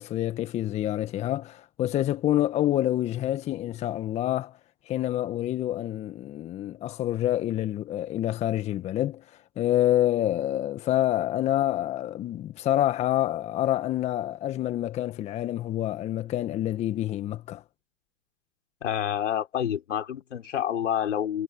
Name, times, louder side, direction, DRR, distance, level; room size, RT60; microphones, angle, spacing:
voice 1, 0.0-4.6 4.8-17.6, left 13 dB, 15° left, 1.4 m, -27 dB
voice 2, 18.8-21.4, left 9 dB, 65° left, 5.0 m, -28 dB
hypercardioid pair, 140°, 38 cm